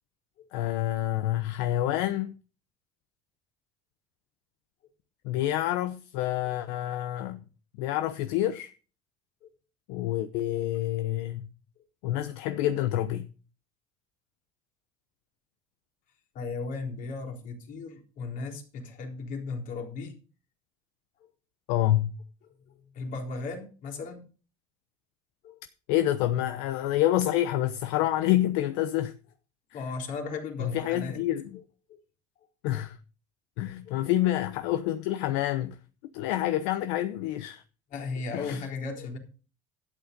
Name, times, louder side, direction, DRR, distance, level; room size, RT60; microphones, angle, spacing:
voice 1, 0.5-2.3 5.2-7.4 7.8-8.7 9.9-11.5 12.0-13.3 21.7-22.2 25.9-29.1 29.7-29.8 30.6-31.6 32.6-33.0 33.6-35.8 36.1-37.6 38.3-38.6, left 13 dB, 80° left, 0.9 m, -28 dB
voice 2, 16.3-20.2 22.9-24.2 25.4-25.6 29.7-31.2 33.9-34.0 37.9-39.2, left 4 dB, 60° left, 4.0 m, -36 dB
12.0 x 8.3 x 5.2 m
supercardioid pair, 95°, 15 cm